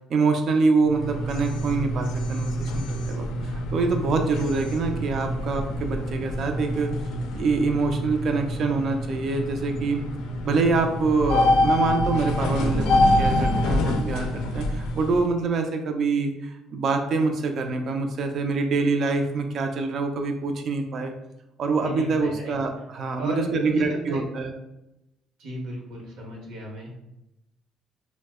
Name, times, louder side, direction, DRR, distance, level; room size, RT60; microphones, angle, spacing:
voice 1, 0.1-3.3 3.7-6.9 7.3-10.0 10.4-21.1 21.6-24.5, right 4 dB, 45° right, 5 dB, 0.3 m, -25 dB
sound 1, 0.8-15.3, left 1 dB, 85° left, 0.4 m, -26 dB
voice 2, 21.8-22.6 23.2-24.2 25.4-26.9, right 1 dB, 75° right, -1 dB, 0.8 m, -35 dB
2.7 x 2.0 x 3.4 m, 0.90 s
cardioid pair, 145°, 0 cm